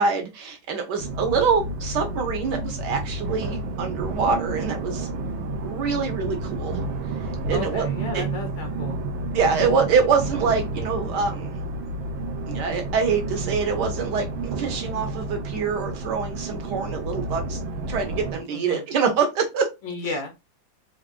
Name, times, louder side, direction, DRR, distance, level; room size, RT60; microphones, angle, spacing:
voice 1, 0.0-5.1 5.6-6.8 7.5-7.8 8.1-8.2 9.3-11.6 12.5-17.6 17.9-19.7, right 5 dB, 70° right, 4 dB, 1.2 m, -25 dB
sound 1, 1.0-18.4, right 2 dB, 85° right, 1.4 m, -30 dB
voice 2, 7.5-9.0 18.5-18.8 19.8-20.3, left 3 dB, 85° left, 3 dB, 0.6 m, -33 dB
3.5 x 2.4 x 2.4 m, 0.24 s
omnidirectional pair, 2.2 m